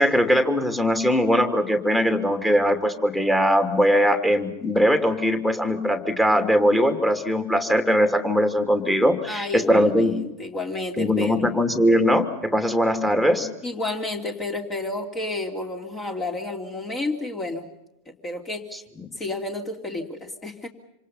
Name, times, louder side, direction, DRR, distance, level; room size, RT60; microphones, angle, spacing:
voice 1, 0.0-10.2 11.0-13.5, equal, 5° left, 7 dB, 2.8 m, -20 dB
voice 2, 9.3-11.5 13.6-17.7 18.1-18.7 19.2-20.7, left 2 dB, 20° left, 4 dB, 3.1 m, -31 dB
27.0 x 27.0 x 5.6 m, 0.89 s
figure-of-eight pair, 90°, 0 cm